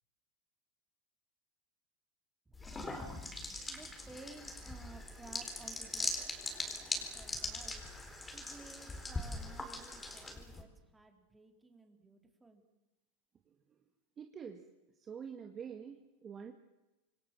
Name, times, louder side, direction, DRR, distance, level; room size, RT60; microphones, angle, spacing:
sound 1, 2.5-10.6, left 2 dB, 15° left, 4.3 m, -41 dB
voice 1, 2.5-2.8 3.5-6.3 6.6-7.8 8.3-12.6, right 3 dB, 10° right, 4 dB, 3.7 m, -56 dB
voice 2, 14.2-14.6 15.0-16.5, right 7 dB, 25° right, 4 dB, 2.1 m, -46 dB
27.0 x 21.0 x 7.5 m, 1.0 s
supercardioid pair, 130°, 0 cm